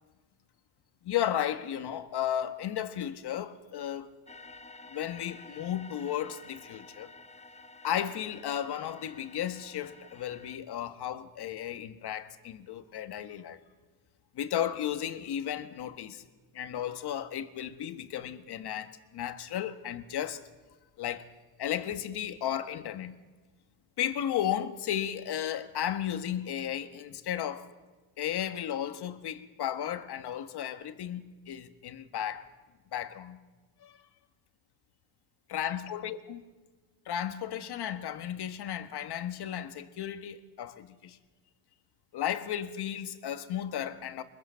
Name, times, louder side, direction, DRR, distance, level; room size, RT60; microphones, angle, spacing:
voice 1, 1.0-4.2 4.9-7.1 7.8-13.6 14.3-16.2 16.5-20.4 21.0-21.3 21.6-23.1 24.0-27.7 28.2-32.5 32.9-33.4 33.8-34.0 35.5-36.4 37.0-41.2 42.1-44.2, left 10 dB, 55° left, 1.7 m, -34 dB
sound 1, 4.3-10.6, left 3 dB, 15° left, 0.9 m, -51 dB
25.0 x 22.0 x 5.8 m
cardioid pair, 95°, 47 cm